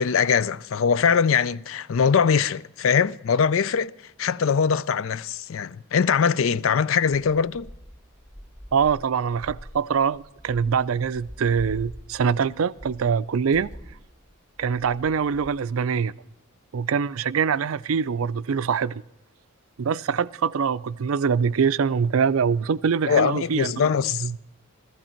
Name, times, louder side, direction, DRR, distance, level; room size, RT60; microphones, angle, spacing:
voice 1, 0.0-3.9 4.2-7.7 23.1-24.3, left 6 dB, 70° left, 0.4 m, -22 dB
sound 1, 7.5-15.5, equal, 15° left, 2.0 m, -44 dB
voice 2, 8.7-13.7 14.6-16.1 16.7-19.0 19.8-23.9 24.2-24.4, right 6 dB, 85° right, 0.5 m, -24 dB
15.0 x 14.5 x 4.4 m
head